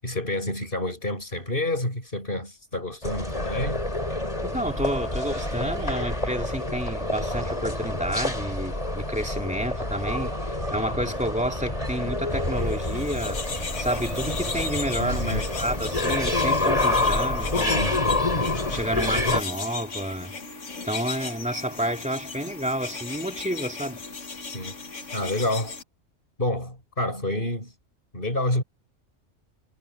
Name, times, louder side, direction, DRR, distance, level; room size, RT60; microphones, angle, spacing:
voice 1, 0.0-3.9 5.6-5.7 15.0-15.5 17.7-18.3 24.5-24.8 25.1-25.8 26.4-27.7 28.1-28.6, left 1 dB, 45° left, 8.2 m, -29 dB
sound 1, 3.0-19.4, left 2 dB, 30° left, 4.7 m, -27 dB
voice 2, 4.4-13.4 13.8-18.1 18.7-20.4 20.8-24.0, equal, 5° right, 2.5 m, -30 dB
sound 2, 12.6-25.8, left 4 dB, 75° left, 2.0 m, -36 dB
omnidirectional pair, 1.3 m